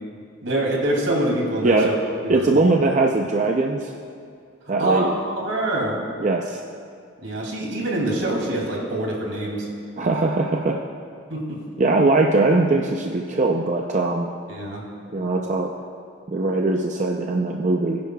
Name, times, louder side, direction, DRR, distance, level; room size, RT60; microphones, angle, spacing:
voice 1, 0.4-2.0 2.2-2.5 4.8-6.0 7.2-9.7 11.3-11.6 14.5-14.8, right 1 dB, 75° right, -2 dB, 2.6 m, -25 dB
voice 2, 2.3-3.9 4.7-5.2 6.2-6.6 10.0-10.8 11.8-14.3 15.1-15.7 16.3-18.0, right 2 dB, 40° right, 1 dB, 0.5 m, -21 dB
21.5 x 10.5 x 2.3 m, 2.2 s
head